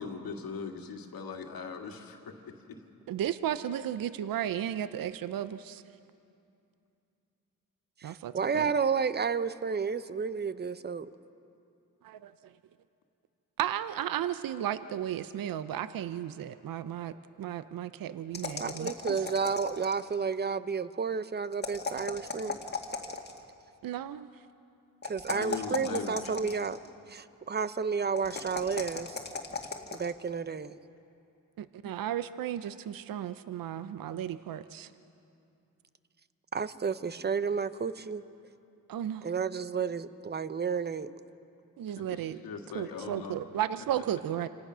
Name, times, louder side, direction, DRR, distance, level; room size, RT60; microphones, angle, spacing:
voice 1, 0.0-2.3 2.7-2.8 25.3-26.3 42.1-43.4, left 5 dB, 80° left, 3 dB, 2.0 m, -40 dB
voice 2, 3.1-5.8 8.0-8.7 12.0-12.5 13.6-19.3 23.8-24.4 31.6-34.9 38.9-39.3 41.8-42.4 42.7-44.5, right 10 dB, 75° right, 13 dB, 0.7 m, -34 dB
voice 3, 8.0-11.1 18.6-22.6 25.0-26.8 27.1-29.2 29.9-30.7 36.5-38.2 39.2-41.2, right 5 dB, 30° right, 14 dB, 0.7 m, -31 dB
sound 1, 18.3-20.1 21.5-23.4 25.0-26.9 28.2-30.1, left 4 dB, 30° left, 1.9 m, -37 dB
27.5 x 18.0 x 6.2 m, 2.6 s
cardioid pair, 85°, 34 cm